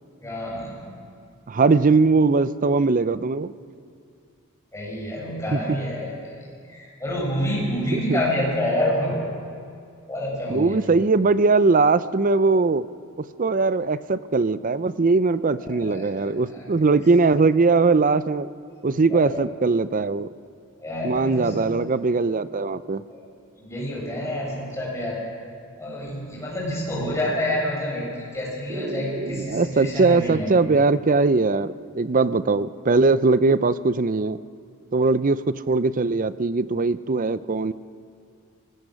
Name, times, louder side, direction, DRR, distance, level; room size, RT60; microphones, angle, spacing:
voice 1, 0.2-0.8 4.7-6.3 6.6-9.2 10.1-10.8 15.6-16.1 16.5-16.8 19.1-19.4 20.8-21.7 23.1-23.2 23.6-25.2 25.8-30.5, left 1 dB, 15° left, -5 dB, 7.3 m, -28 dB
voice 2, 1.5-3.5 5.5-5.6 7.9-8.2 10.5-12.9 13.4-18.5 18.8-20.3 21.0-23.0 28.7-34.4 34.9-37.7, right 3 dB, 35° right, 15 dB, 0.5 m, -20 dB
24.5 x 19.5 x 6.4 m, 2.3 s
head